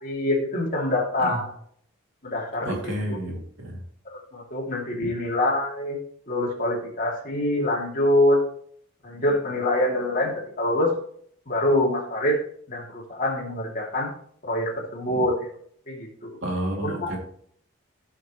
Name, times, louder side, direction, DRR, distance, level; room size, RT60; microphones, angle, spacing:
voice 1, 0.0-1.5 2.2-3.2 4.0-6.0 6.3-8.4 9.0-10.9 11.5-12.4 12.7-14.1 14.4-15.5 15.9-16.4 16.8-17.1, left 1 dB, 40° left, -2 dB, 2.7 m, -25 dB
voice 2, 2.7-3.8 5.0-5.1 16.4-17.2, right 1 dB, 70° right, -1 dB, 2.6 m, -30 dB
15.5 x 5.8 x 3.1 m, 0.63 s
head